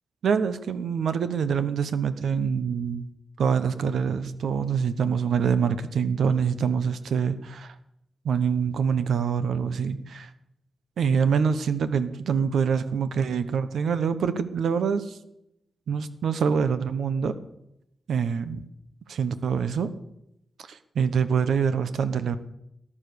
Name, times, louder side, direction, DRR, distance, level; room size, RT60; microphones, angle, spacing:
voice 1, 0.2-3.1 3.4-7.7 8.2-10.3 11.0-15.2 15.9-17.3 18.1-18.6 19.1-19.9 20.6-22.4, right 6 dB, 80° right, 11 dB, 1.0 m, -25 dB
19.0 x 10.0 x 6.8 m, 0.82 s
wide cardioid pair, 110°, 0 cm